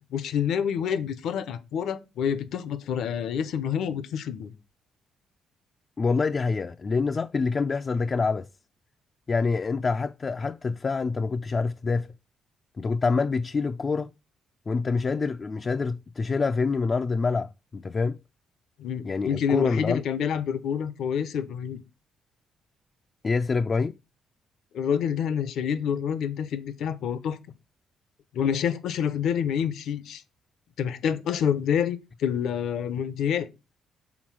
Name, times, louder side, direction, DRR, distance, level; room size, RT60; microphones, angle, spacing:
voice 1, 0.1-4.5 18.8-21.8 24.7-27.4 28.3-30.2 30.8-33.5, left 8 dB, 75° left, 0.9 m, -27 dB
voice 2, 6.0-8.5 9.3-12.1 12.8-14.1 14.7-18.2 19.0-20.0 23.2-23.9, left 4 dB, 35° left, 0.4 m, -26 dB
6.2 x 3.8 x 6.2 m
cardioid pair, 90°, 0 cm